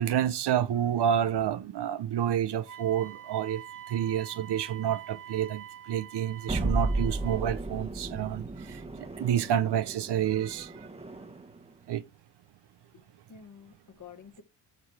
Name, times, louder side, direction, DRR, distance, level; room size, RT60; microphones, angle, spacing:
voice 1, 0.0-8.8 9.2-10.9 11.9-12.0, right 10 dB, 65° right, 0.7 m, -29 dB
Wind instrument woodwind instrument, 2.6-7.5, right 9 dB, 50° right, 1.0 m, -46 dB
sound 1, 6.5-11.6, right 2 dB, 15° right, 1.1 m, -34 dB
voice 2, 12.9-14.4, left 7 dB, 45° left, 1.4 m, -50 dB
6.8 x 4.8 x 5.8 m
cardioid pair, 95°, 43 cm